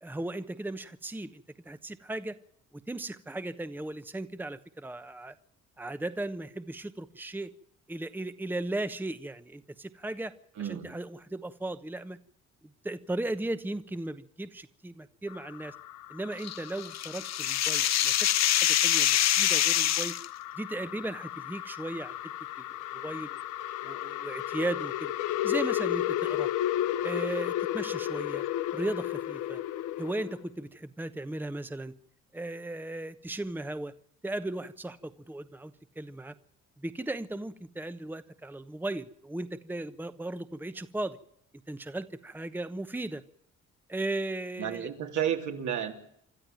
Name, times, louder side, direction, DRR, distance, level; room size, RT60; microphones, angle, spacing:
voice 1, 0.0-2.4 2.7-5.3 5.8-7.5 7.9-12.2 12.8-15.7 16.1-18.3 18.6-20.2 20.6-22.1 22.6-23.4 23.8-25.1 25.4-26.5 27.0-28.4 28.7-29.6 30.0-31.9 32.3-33.9 34.2-36.3 36.8-41.2 41.7-43.2 43.9-44.9, right 2 dB, 5° right, 11 dB, 1.0 m, -36 dB
voice 2, 10.6-10.9 44.6-45.9, right 9 dB, 70° right, 4 dB, 3.3 m, -31 dB
sound 1, 15.3-30.4, left 13 dB, 90° left, 0.9 m, -34 dB
sound 2, 16.4-20.3, left 12 dB, 60° left, 0.8 m, -25 dB
26.5 x 12.5 x 9.1 m, 0.71 s
cardioid pair, 90°, 30 cm